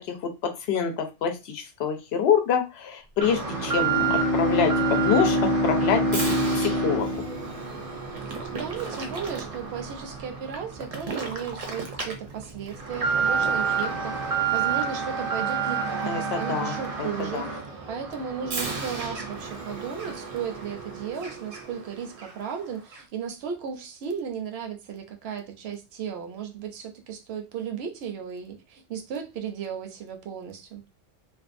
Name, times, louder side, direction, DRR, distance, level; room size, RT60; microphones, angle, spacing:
voice 1, 0.1-6.1 6.5-7.1 16.1-17.1 17.3-17.5, left 7 dB, 65° left, 0.8 m, -26 dB
Alarm, 3.2-21.9 22.2-22.3 22.9-23.0, right 6 dB, 50° right, 0.4 m, -31 dB
Bowed string instrument, 3.4-8.0, equal, 40° left, 0.9 m, -26 dB
voice 2, 8.1-14.2 14.5-17.6 17.9-30.8, right 7 dB, 65° right, 0.8 m, -35 dB
Wind instrument woodwind instrument, 13.2-17.0, right 4 dB, 85° right, 1.0 m, -35 dB
2.6 x 2.3 x 2.5 m
omnidirectional pair, 1.2 m